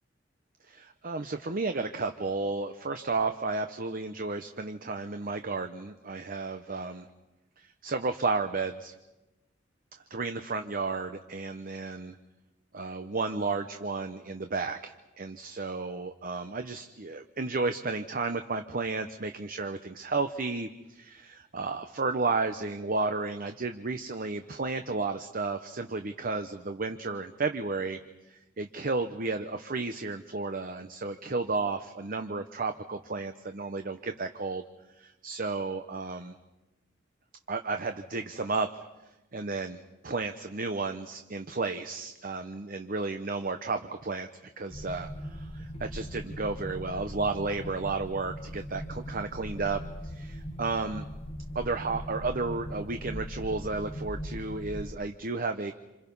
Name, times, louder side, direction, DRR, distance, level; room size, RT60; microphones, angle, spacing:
voice 1, 0.7-7.1 7.6-8.9 10.1-12.2 12.7-28.0 28.3-34.6 35.0-36.3 37.5-38.7 39.3-44.3 44.6-51.1 51.5-55.7, right 3 dB, 50° right, 7 dB, 0.9 m, -33 dB
sound 1, 44.7-54.9, equal, 30° left, 1.2 m, -40 dB
27.5 x 27.5 x 5.5 m, 1.0 s
head